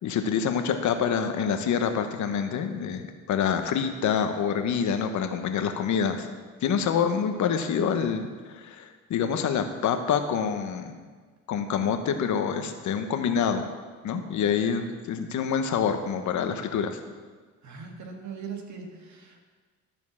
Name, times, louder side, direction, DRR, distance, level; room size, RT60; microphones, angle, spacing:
voice 1, 0.0-6.3 6.6-10.9 11.5-13.6 14.0-17.0, left 7 dB, 75° left, 7 dB, 1.0 m, -26 dB
voice 2, 17.6-19.4, right 6 dB, 70° right, 1 dB, 1.9 m, -40 dB
13.0 x 4.5 x 7.2 m, 1.5 s
cardioid pair, 90°, 30 cm